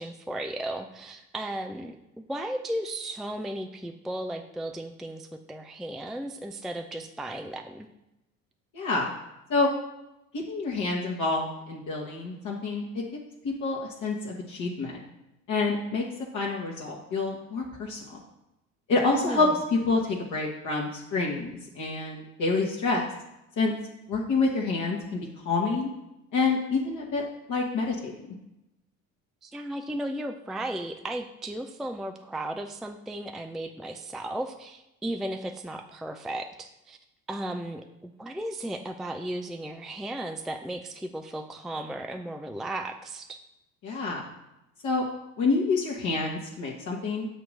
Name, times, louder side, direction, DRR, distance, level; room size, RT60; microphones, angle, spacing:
voice 1, 0.0-7.9 19.1-19.6 29.4-37.0 37.3-43.4, right 1 dB, ahead, 5 dB, 0.4 m, -35 dB
voice 2, 8.7-9.1 9.5-9.7 10.3-12.8 13.4-15.0 15.5-16.0 16.3-18.2 18.9-19.5 19.9-23.0 23.6-23.7 24.1-25.9 26.3-28.1 43.8-44.2 44.8-45.1 45.4-47.3, left 3 dB, 45° left, -3 dB, 1.4 m, -27 dB
8.3 x 3.0 x 6.2 m, 0.90 s
figure-of-eight pair, 55°, 40 cm